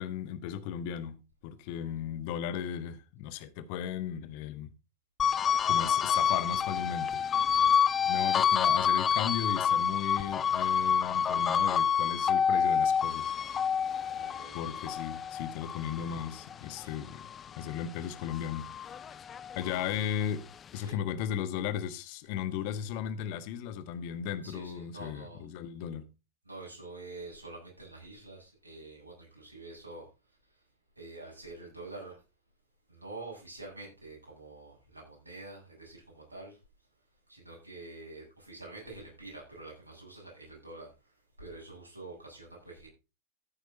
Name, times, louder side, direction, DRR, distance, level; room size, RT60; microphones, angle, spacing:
voice 1, 0.0-4.7 5.7-7.2 8.0-13.3 14.5-18.7 19.5-20.4 20.7-26.1, left 9 dB, 45° left, 1.4 m, -36 dB
sound 1, 5.2-17.8 18.2-19.9, left 7 dB, 25° left, 0.6 m, -28 dB
voice 2, 14.1-14.9 16.8-16.9 19.7-20.1 20.8-21.0 24.4-25.4 26.5-30.1 31.0-32.2 32.9-36.6 37.3-42.9, right 2 dB, 80° right, 7.9 m, -47 dB
14.5 x 8.9 x 4.0 m
figure-of-eight pair, 90°, 0 cm